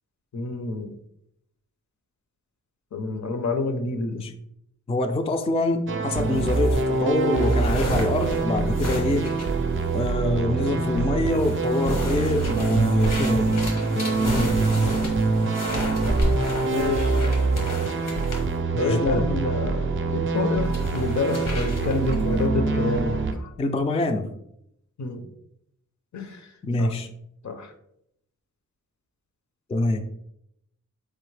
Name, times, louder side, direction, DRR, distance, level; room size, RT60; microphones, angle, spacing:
voice 1, 0.3-0.9 2.9-4.2 14.1-14.6 16.7-17.2 18.8-23.5 25.0-25.3 26.1-26.5 26.8-26.9 27.4-27.7, left 3 dB, 65° left, 6 dB, 0.6 m, -28 dB
voice 2, 4.9-9.3 9.9-13.7 13.9-14.8 18.7-19.2 23.6-24.3 26.6-27.1 29.7-30.0, left 2 dB, 20° left, 6 dB, 0.3 m, -25 dB
sound 1, 5.9-23.3, right 3 dB, 40° right, 0.4 m, -24 dB
sound 2, 6.2-10.1 10.7-11.0 11.3-18.5 20.6-22.3, left 1 dB, 80° left, 1.1 m, -33 dB
4.0 x 3.4 x 3.2 m, 0.77 s
wide cardioid pair, 75°, 31 cm